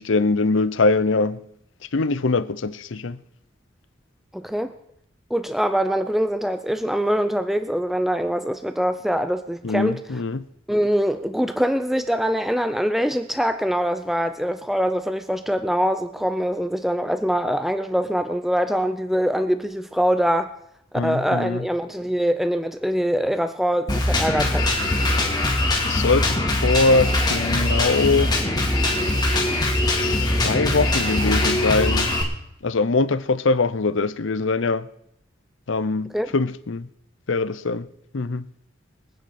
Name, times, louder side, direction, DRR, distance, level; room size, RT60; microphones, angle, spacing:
voice 1, 0.0-1.4 1.9-3.2 9.6-10.5 21.0-21.6 25.9-28.3 29.9-32.1 32.6-34.9 35.7-36.9 37.3-37.9 38.1-38.5, left 3 dB, 70° left, 0.7 m, -22 dB
voice 2, 4.3-4.7 5.3-10.0 10.7-20.5 20.9-24.6 36.1-36.3, equal, ahead, 0.5 m, -23 dB
Drum kit, 23.9-32.2, left 1 dB, 20° left, 2.4 m, -22 dB
25.0 x 9.4 x 4.3 m
head